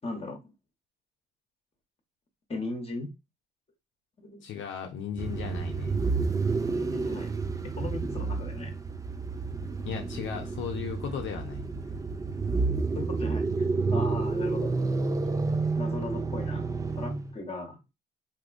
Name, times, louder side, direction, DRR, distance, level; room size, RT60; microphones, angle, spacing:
voice 1, 0.0-0.5 2.5-3.1 4.2-4.4 6.8-7.3 7.6-8.7 12.9-14.7 15.8-16.7 17.0-17.8, left 2 dB, 30° left, 1.0 m, -37 dB
voice 2, 4.4-6.3 9.8-11.6, left 8 dB, 75° left, 0.6 m, -36 dB
sound 1, 5.2-17.4, right 4 dB, 15° right, 0.4 m, -30 dB
3.6 x 2.7 x 2.5 m
cardioid pair, 90°, 20 cm